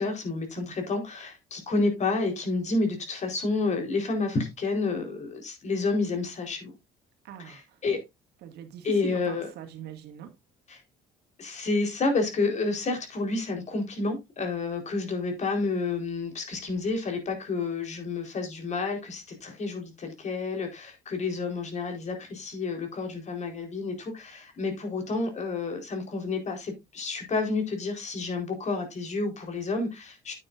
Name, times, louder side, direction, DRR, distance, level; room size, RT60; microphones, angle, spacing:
voice 1, 0.0-6.7 7.4-8.0 8.8-9.5 10.7-10.8 11.4-30.3, left 3 dB, 45° left, 4.2 m, -30 dB
voice 2, 7.2-7.6 8.4-10.3, right 10 dB, 80° right, 2.1 m, -41 dB
9.6 x 9.2 x 2.6 m
cardioid pair, 110°, 17 cm